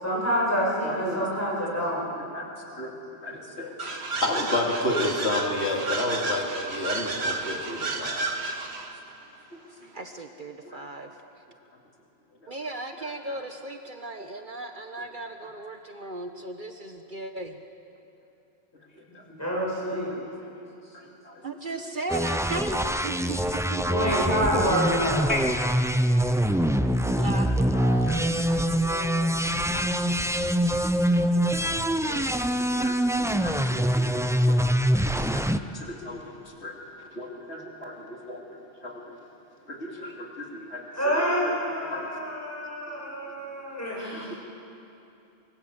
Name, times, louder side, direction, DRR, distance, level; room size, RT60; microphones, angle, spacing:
voice 1, 0.0-2.0 19.3-20.1 23.9-25.2 40.9-44.3, equal, 15° left, -5 dB, 7.7 m, -27 dB
voice 2, 0.8-1.2 2.2-2.5 2.8-3.9 4.2-8.3 9.8-10.1 10.6-10.8 12.4-12.6 13.0-13.4 15.0-15.1 18.9-19.2 20.1-21.4 21.7-21.9 24.1-24.2 24.6-24.7 25.3-25.4 26.5-28.2 29.7-29.9 30.8-31.6 32.1-34.7 35.0-36.3 36.6-36.8 37.1-38.4 38.8-39.0 39.7-42.1 42.9-43.1 44.1-44.3, left 2 dB, 85° left, -1 dB, 3.1 m, -34 dB
sound 1, 3.8-9.0, right 3 dB, 75° right, 1.8 m, -31 dB
voice 3, 9.9-11.1 12.5-17.6 21.4-23.4 23.7-23.8 27.2-29.3, right 2 dB, 50° right, 5 dB, 1.3 m, -36 dB
sound 2, 22.1-35.6, equal, 5° right, 0.5 m, -24 dB
25.0 x 23.5 x 8.1 m, 2.8 s
omnidirectional pair, 1.1 m